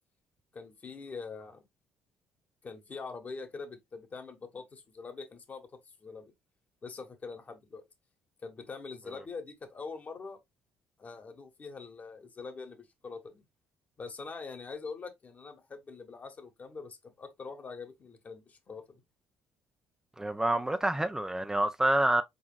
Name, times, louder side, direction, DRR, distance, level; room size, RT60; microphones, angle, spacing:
voice 1, 0.5-1.6 2.6-5.7 6.0-6.3 6.8-7.8 8.4-10.4 11.0-13.4 14.0-19.0, left 4 dB, 40° left, 1.2 m, -44 dB
voice 2, 20.2-22.2, right 1 dB, 10° right, 0.4 m, -27 dB
4.6 x 4.0 x 2.3 m
hypercardioid pair, 60°, 4 cm